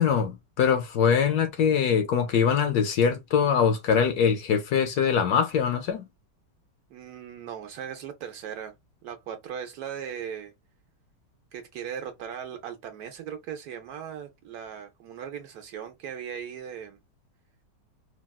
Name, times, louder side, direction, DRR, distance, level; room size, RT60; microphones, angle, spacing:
voice 1, 0.0-6.1, left 7 dB, 70° left, 1.0 m, -23 dB
voice 2, 6.9-8.7 9.0-10.5 11.5-17.0, right 8 dB, 70° right, 0.9 m, -38 dB
3.4 x 2.3 x 2.2 m
omnidirectional pair, 1.9 m